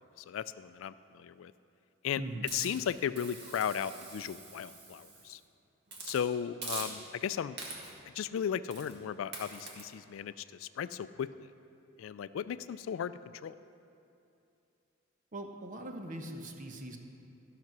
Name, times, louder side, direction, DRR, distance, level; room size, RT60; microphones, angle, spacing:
voice 1, 0.3-1.5 2.0-2.2 2.5-5.4 6.0-7.6 8.2-11.5 12.0-13.1 13.4-13.5, left 8 dB, 70° left, 14 dB, 0.3 m, -36 dB
voice 2, 2.2-2.5 15.3-17.0, right 1 dB, 40° right, 4 dB, 0.9 m, -41 dB
Hiss, 2.5-5.4 5.9-6.2 6.6-7.2 7.6-8.0 8.7-9.0 9.3-9.8, right 3 dB, 55° right, 1.7 m, -44 dB
13.5 x 6.0 x 6.0 m, 2.7 s
head